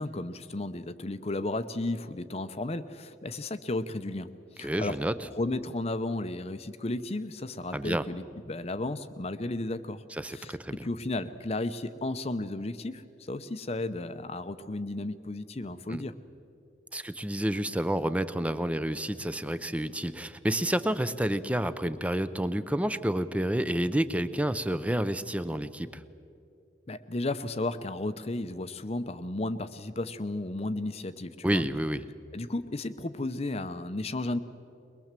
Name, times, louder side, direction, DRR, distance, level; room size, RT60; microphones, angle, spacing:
voice 1, 0.0-4.3 4.5-5.0 5.3-10.5 10.8-16.1 26.9-31.6 32.3-34.4, left 2 dB, 35° left, 11 dB, 0.7 m, -34 dB
voice 2, 4.6-5.2 7.7-8.1 10.1-10.9 15.9-16.0 16.9-26.0 31.4-32.0, right 1 dB, 5° right, 13 dB, 0.6 m, -29 dB
22.0 x 21.5 x 7.5 m, 2.6 s
head